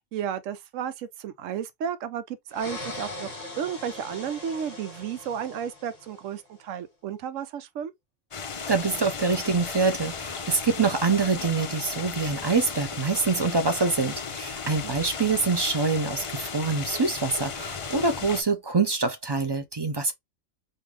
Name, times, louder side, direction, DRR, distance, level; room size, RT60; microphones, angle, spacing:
voice 1, 0.1-7.9 14.7-14.9, right 8 dB, 85° right, 1.0 m, -33 dB
sound 1, 2.5-6.4, left 2 dB, 30° left, 1.1 m, -40 dB
sound 2, 8.3-18.4, left 5 dB, 50° left, 0.3 m, -35 dB
voice 2, 8.7-20.1, right 4 dB, 35° right, 0.4 m, -25 dB
3.7 x 2.7 x 3.1 m
omnidirectional pair, 1.3 m